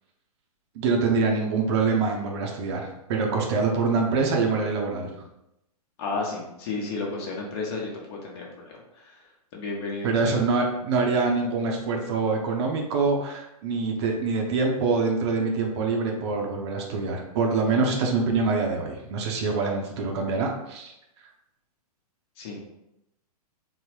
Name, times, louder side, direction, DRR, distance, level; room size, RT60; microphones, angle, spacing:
voice 1, 0.7-5.1 10.0-20.9, right 4 dB, 45° right, 1 dB, 0.6 m, -25 dB
voice 2, 6.0-9.2 9.5-10.4 22.4-22.7, left 3 dB, 40° left, -1 dB, 0.9 m, -33 dB
3.8 x 2.0 x 3.0 m, 0.85 s
figure-of-eight pair, 110°, 20 cm